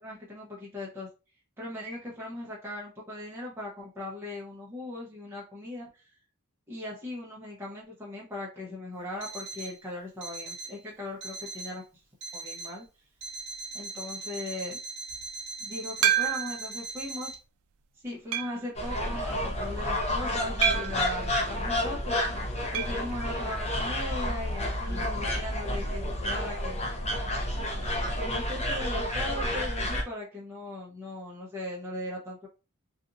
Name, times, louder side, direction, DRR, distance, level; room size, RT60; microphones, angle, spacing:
voice 1, 0.0-1.1 1.6-6.1 6.7-11.8 12.3-12.9 13.7-14.8 15.6-17.3 18.0-22.1 22.7-26.8 28.1-32.5, left 1 dB, 10° right, -5 dB, 0.7 m, -38 dB
Alarm, 9.2-9.8 10.2-10.8 11.2-11.8 12.2-12.8 13.2-17.3, right 3 dB, 50° right, 0.9 m, -40 dB
sound 1, 16.0-16.7 17.3-17.4 18.3-18.7 20.6-21.1 22.7-23.0 23.3-23.4 23.7-23.8 25.8-25.9, right 10 dB, 75° right, 0.3 m, -27 dB
sound 2, 18.8-30.0, left 1 dB, 30° left, 0.6 m, -30 dB
2.8 x 2.4 x 2.5 m, 0.30 s
head